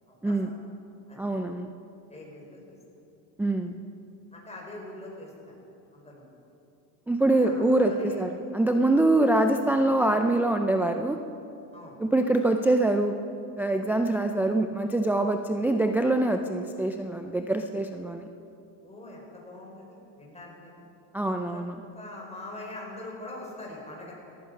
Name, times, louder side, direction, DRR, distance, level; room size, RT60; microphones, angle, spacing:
voice 1, 0.1-0.5 1.1-1.2 2.1-2.7 3.6-3.7 4.3-5.6 5.9-6.3 7.4-8.2 11.7-12.0 18.8-20.8 21.5-21.6 21.9-24.1, left 2 dB, 15° left, -2 dB, 5.0 m, -43 dB
voice 2, 1.2-1.7 3.4-3.7 7.1-11.2 12.0-13.1 13.6-18.2 21.1-21.7, right 2 dB, 5° right, 5 dB, 0.4 m, -24 dB
17.5 x 14.5 x 5.2 m, 2.7 s
supercardioid pair, 115°, 45 cm